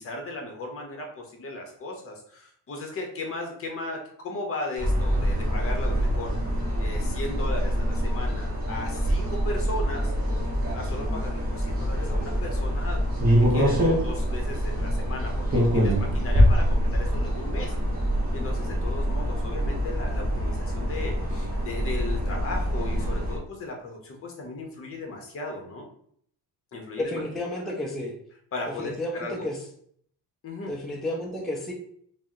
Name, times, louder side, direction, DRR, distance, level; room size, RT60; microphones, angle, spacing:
voice 1, 0.0-6.3 6.8-10.1 10.7-13.0 13.5-17.7 18.3-25.9 26.7-27.2 27.7-27.8 28.5-29.5 30.4-30.7, left 2 dB, 35° left, 1 dB, 0.7 m, -36 dB
sound 1, 4.8-23.4, equal, 25° right, 0.8 m, -25 dB
voice 2, 27.0-28.1 28.8-29.6 30.7-31.7, left 1 dB, ahead, -1 dB, 0.4 m, -31 dB
2.7 x 2.1 x 3.6 m, 0.64 s
cardioid pair, 140°, 39 cm